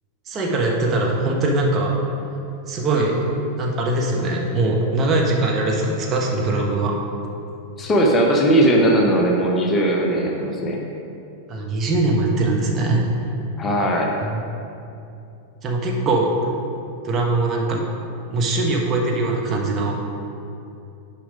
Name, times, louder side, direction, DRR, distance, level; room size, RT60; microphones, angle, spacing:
voice 1, 0.3-2.0 2.7-3.2 3.6-7.0 11.5-13.1 14.2-14.4 15.6-16.5 17.0-17.9 18.3-20.0, right 2 dB, 25° right, -1 dB, 1.0 m, -21 dB
voice 2, 7.8-10.8 13.6-14.2, right 1 dB, 20° left, 0 dB, 0.9 m, -18 dB
6.3 x 5.0 x 5.0 m, 2.7 s
figure-of-eight pair, 90°, 0 cm